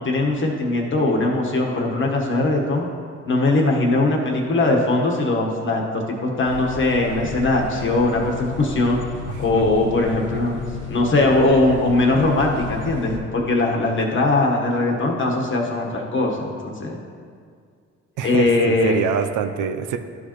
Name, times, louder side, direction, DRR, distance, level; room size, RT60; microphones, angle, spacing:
voice 1, 0.0-2.9 3.3-9.0 9.3-10.6 10.9-17.0 18.2-19.0, left 2 dB, 40° left, 0 dB, 1.2 m, -20 dB
sound 1, 6.4-13.2, left 7 dB, 85° left, 0.9 m, -33 dB
voice 2, 9.3-9.7 18.2-20.0, right 8 dB, 80° right, 7 dB, 0.5 m, -26 dB
11.5 x 4.9 x 3.0 m, 2.1 s
cardioid pair, 90°, 30 cm